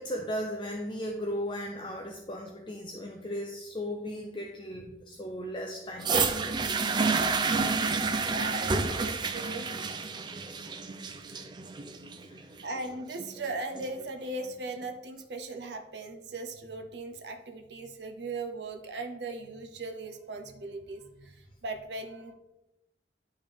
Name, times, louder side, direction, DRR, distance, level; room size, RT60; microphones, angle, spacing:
voice 1, 0.0-6.1 12.2-12.5, equal, 30° left, 2 dB, 0.5 m, -36 dB
sound 1, 6.0-14.0 14.8-14.9, right 4 dB, 25° right, 0.4 m, -30 dB
voice 2, 7.4-9.7 12.6-21.4 21.6-22.3, right 2 dB, 75° right, 5 dB, 0.7 m, -38 dB
10.0 x 3.6 x 3.4 m, 0.97 s
head